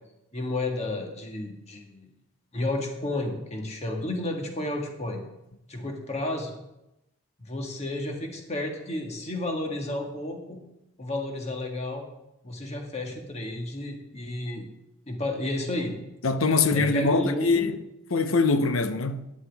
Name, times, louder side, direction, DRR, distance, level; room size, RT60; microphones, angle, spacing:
voice 1, 0.3-2.1 2.5-5.2 5.7-6.5 7.4-10.6 11.0-12.0 12.4-14.6 15.1-16.0 16.7-17.7, left 1 dB, 30° left, 1.7 m, -31 dB
voice 2, 16.2-17.8 18.1-19.3, left 4 dB, 90° left, 0.8 m, -23 dB
14.0 x 10.0 x 3.5 m
head